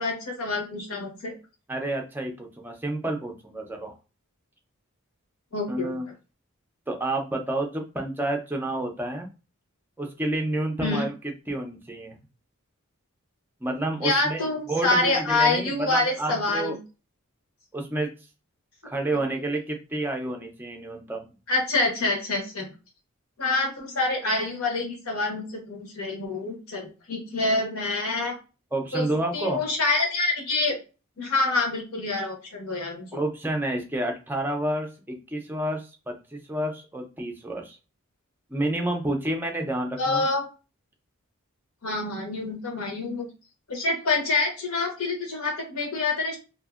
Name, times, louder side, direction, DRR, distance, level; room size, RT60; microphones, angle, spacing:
voice 1, 0.0-1.3 5.5-5.9 10.8-11.0 14.0-16.8 19.2-19.3 21.5-22.7 23.4-28.3 28.9-29.1 29.3-30.8 31.2-33.2 40.0-40.4 41.8-43.3 43.7-46.4, left 2 dB, 80° left, 2 dB, 1.1 m, -26 dB
voice 2, 1.7-3.9 5.7-6.1 6.9-9.3 10.0-11.1 11.5-12.2 13.6-16.8 17.7-18.1 18.8-21.3 28.7-29.6 33.1-37.8 38.5-40.2, right 1 dB, 10° right, 2 dB, 0.4 m, -29 dB
2.7 x 2.6 x 2.4 m, 0.32 s
head